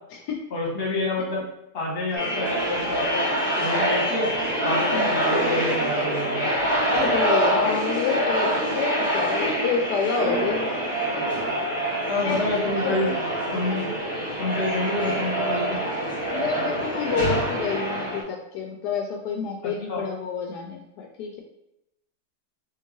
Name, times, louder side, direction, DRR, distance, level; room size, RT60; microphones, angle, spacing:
voice 1, 0.5-1.4 1.7-3.2 3.5-4.3 4.6-6.5 12.1-13.1 13.5-13.9 14.4-15.8 19.6-20.0, left 2 dB, 40° left, -3 dB, 1.2 m, -28 dB
sound 1, 2.1-18.2, right 1 dB, 25° left, 0.9 m, -25 dB
voice 2, 6.9-10.7 12.2-13.2 16.3-21.4, left 6 dB, 75° left, 1 dB, 1.1 m, -28 dB
3.7 x 2.8 x 3.0 m, 0.87 s
omnidirectional pair, 1.8 m